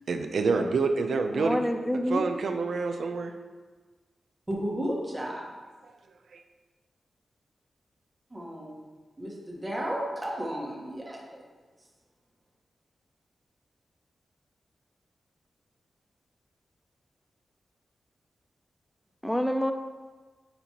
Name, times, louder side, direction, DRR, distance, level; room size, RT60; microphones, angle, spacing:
voice 1, 0.1-3.3 6.3-6.4, right 4 dB, 70° right, 6 dB, 0.5 m, -28 dB
voice 2, 1.3-2.3 19.2-19.7, equal, 5° left, 7 dB, 0.4 m, -27 dB
voice 3, 4.5-5.6 8.3-8.8 9.2-11.4, equal, 15° right, -3 dB, 1.2 m, -33 dB
9.2 x 4.4 x 2.9 m, 1.3 s
wide cardioid pair, 135°, 0 cm